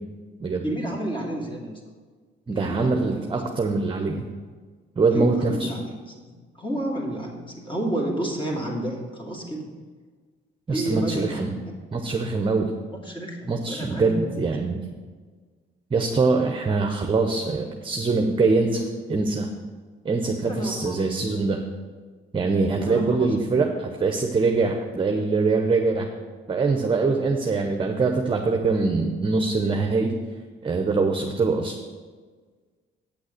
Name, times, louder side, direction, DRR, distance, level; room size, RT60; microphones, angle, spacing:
voice 1, 0.6-1.8 2.5-3.5 5.1-5.8 6.2-6.3 6.6-9.7 10.7-11.5 13.0-14.3 20.3-21.0 22.7-23.5, right 1 dB, 25° left, -2 dB, 2.5 m, -30 dB
voice 2, 2.5-4.2 5.0-5.7 10.7-11.5 11.9-12.7 13.5-14.8 15.9-19.5 20.0-21.6 22.3-26.1 26.5-30.1 30.6-31.8, right 3 dB, 25° right, 3 dB, 0.8 m, -23 dB
8.4 x 6.3 x 6.5 m, 1.5 s
cardioid pair, 90°, 20 cm